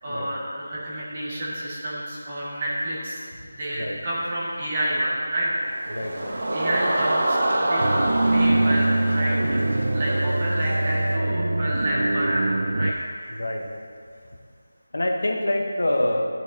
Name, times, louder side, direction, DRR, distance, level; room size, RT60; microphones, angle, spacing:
voice 1, 0.0-3.2 3.5-5.5 6.5-9.6 9.9-12.9, right 1 dB, 25° right, -7 dB, 2.0 m, -29 dB
sound 1, 5.6-11.2, right 1 dB, 55° right, 1.0 m, -27 dB
voice 2, 5.9-6.6 13.3-13.6 14.9-16.2, left 1 dB, 75° left, 2 dB, 1.2 m, -26 dB
sound 2, 7.8-12.9, right 2 dB, 70° right, 0.4 m, -23 dB
13.5 x 6.3 x 2.9 m, 2.2 s
figure-of-eight pair, 175°, 0 cm